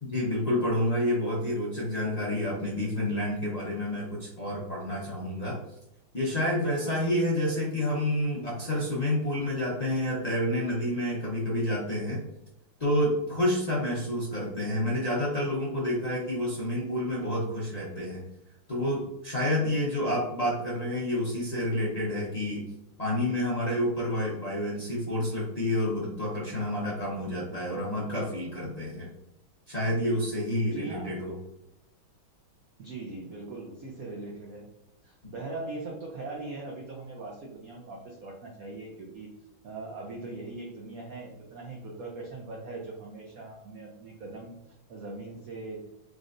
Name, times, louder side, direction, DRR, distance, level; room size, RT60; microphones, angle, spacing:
voice 1, 0.0-5.6 6.1-12.2 12.8-18.2 18.7-22.6 23.0-29.1 29.7-31.3 35.2-35.3, left 1 dB, 70° left, -7 dB, 0.3 m, -29 dB
voice 2, 30.6-31.2 32.8-34.7 35.0-39.3 39.6-44.6 44.9-45.9, right 2 dB, 75° right, -1 dB, 0.8 m, -40 dB
3.7 x 3.4 x 2.5 m, 0.87 s
omnidirectional pair, 2.3 m